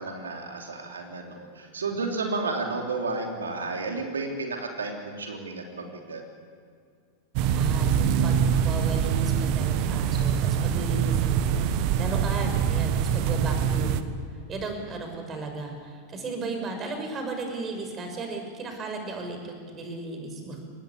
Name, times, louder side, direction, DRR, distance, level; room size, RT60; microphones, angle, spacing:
voice 1, 0.0-6.2 11.4-11.8, right 3 dB, 80° right, 2 dB, 3.2 m, -32 dB
sound 1, 7.4-14.0, right 8 dB, 50° right, 1.4 m, -24 dB
voice 2, 7.5-14.0 14.5-20.6, right 3 dB, 30° right, 4 dB, 6.2 m, -35 dB
24.0 x 19.5 x 8.7 m, 2.2 s
figure-of-eight pair, 90°, 0 cm